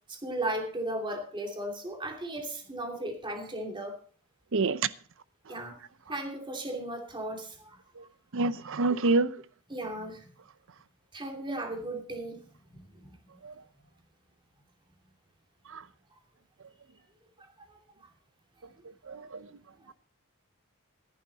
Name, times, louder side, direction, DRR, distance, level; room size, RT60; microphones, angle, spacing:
voice 1, 0.1-4.0 5.5-5.8 6.1-7.8 9.7-10.3 11.1-12.4 12.7-13.1 17.4-17.5 17.7-17.8, right 1 dB, 20° right, 2.8 m, -36 dB
voice 2, 8.3-9.3 13.4-13.5 15.7-15.8 19.1-19.5, right 3 dB, 60° right, 0.7 m, -27 dB
14.0 x 11.0 x 4.0 m
head